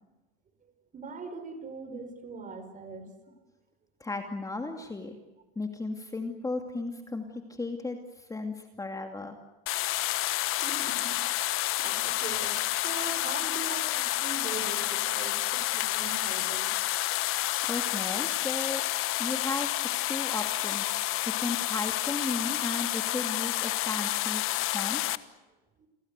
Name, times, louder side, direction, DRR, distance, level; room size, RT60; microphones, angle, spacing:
voice 1, 0.9-3.1 10.6-11.1 11.8-16.7 25.8-25.9, right 4 dB, 25° right, 9 dB, 5.0 m, -41 dB
voice 2, 4.0-5.2 5.6-9.4 17.2-18.8 19.2-20.9 21.3-24.5 24.7-25.0, left 3 dB, 10° left, 5 dB, 2.5 m, -35 dB
sound 1, 9.7-25.2, left 16 dB, 45° left, 1.3 m, -29 dB
29.5 x 22.5 x 8.2 m, 1.1 s
supercardioid pair, 115°, 30 cm